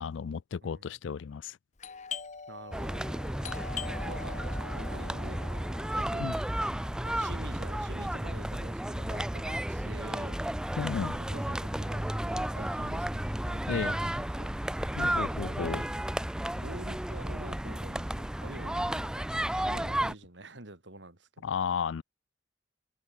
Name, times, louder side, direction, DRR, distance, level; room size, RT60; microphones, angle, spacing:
voice 1, 0.0-1.6 6.2-6.3 10.8-11.1 13.7-13.9 15.0-15.8 21.4-22.0, left 6 dB, 85° left, 0.4 m, -33 dB
voice 2, 0.6-1.0 2.5-3.1 3.9-5.7 5.9-6.3 7.0-10.4 11.0-14.6 15.4-15.8 16.5-21.6, right 2 dB, 70° right, 3.0 m, -47 dB
Doorbell, 1.8-11.2 11.4-11.5 12.2-12.5 12.8-14.2, left 6 dB, 40° left, 0.9 m, -45 dB
sound 1, 2.7-20.1, right 1 dB, 5° right, 0.3 m, -33 dB
head